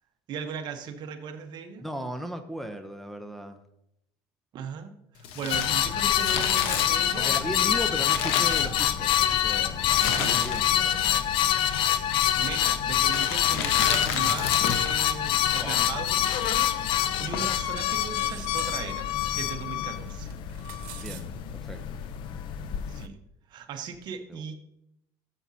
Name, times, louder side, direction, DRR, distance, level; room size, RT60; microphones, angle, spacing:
voice 1, 0.3-1.8 4.5-7.8 10.2-10.5 12.4-20.3 22.9-23.2 23.5-24.5, right 7 dB, 50° right, 6 dB, 1.0 m, -38 dB
voice 2, 1.8-3.6 7.2-11.2 15.6-15.9 17.2-17.5 21.0-21.8 24.3-24.4, equal, ahead, 4 dB, 0.7 m, -37 dB
Crumpling crinkling, 5.2-9.2 9.8-10.9 11.1-11.2 12.1-12.4 13.1-15.0 15.2-15.3, left 7 dB, 75° left, 1.1 m, -31 dB
sound 1, 5.5-23.1, left 11 dB, 60° left, 0.6 m, -26 dB
Sword re-sheathed, 18.1-18.7 20.3-21.2, right 12 dB, 80° right, 1.1 m, -43 dB
12.5 x 7.4 x 2.8 m, 0.80 s
cardioid pair, 120°, 10 cm